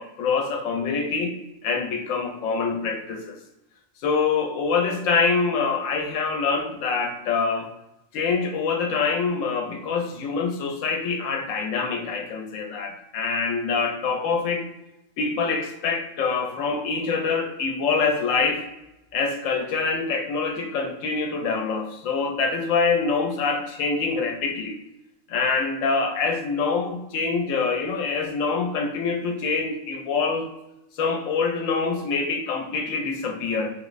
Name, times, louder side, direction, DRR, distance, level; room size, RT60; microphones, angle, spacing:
voice 1, 0.0-1.3 1.6-3.4 4.0-7.7 8.1-14.7 15.2-18.6 19.1-24.8 25.3-30.5 30.9-33.7, left 4 dB, 75° left, 4 dB, 0.9 m, -25 dB
3.3 x 2.4 x 3.0 m, 0.91 s
omnidirectional pair, 1.4 m